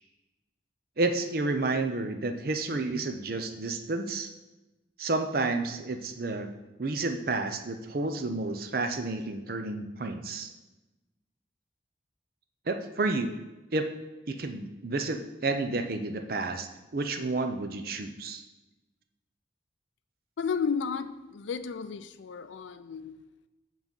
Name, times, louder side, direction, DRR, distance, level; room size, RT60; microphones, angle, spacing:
voice 1, 1.0-4.3 5.0-10.5 12.7-13.3 13.7-13.9 14.3-18.4, right 3 dB, 50° right, 7 dB, 0.6 m, -31 dB
voice 2, 20.4-23.2, left 6 dB, 85° left, 12 dB, 0.4 m, -33 dB
7.2 x 3.9 x 5.4 m, 1.1 s
head